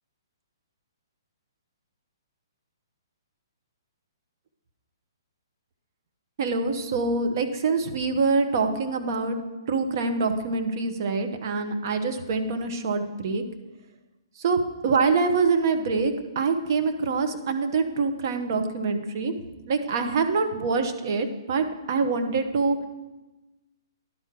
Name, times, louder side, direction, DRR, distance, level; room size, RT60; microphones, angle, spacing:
voice 1, 6.4-9.4 9.7-13.4 14.4-19.3 19.7-22.8, right 4 dB, 50° right, 7 dB, 0.9 m, -25 dB
11.0 x 4.6 x 6.0 m, 1.1 s
figure-of-eight pair, 125°, 2 cm